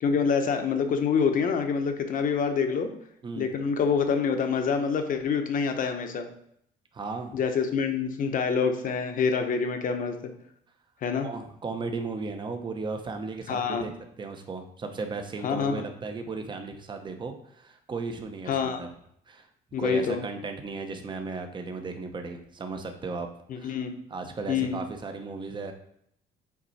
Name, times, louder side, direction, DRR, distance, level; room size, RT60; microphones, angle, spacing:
voice 1, 0.0-2.9 3.4-6.3 7.3-10.2 11.0-11.3 13.5-13.8 15.4-15.8 18.5-18.8 19.7-20.2 23.5-23.9 24.5-24.8, left 6 dB, 55° left, 6 dB, 1.0 m, -26 dB
voice 2, 6.9-7.4 11.2-13.9 14.2-18.9 19.3-19.5 19.8-23.3 23.6-23.8 24.1-25.7, right 3 dB, 25° right, 6 dB, 0.9 m, -35 dB
6.0 x 4.2 x 4.2 m, 0.70 s
cardioid pair, 110°, 17 cm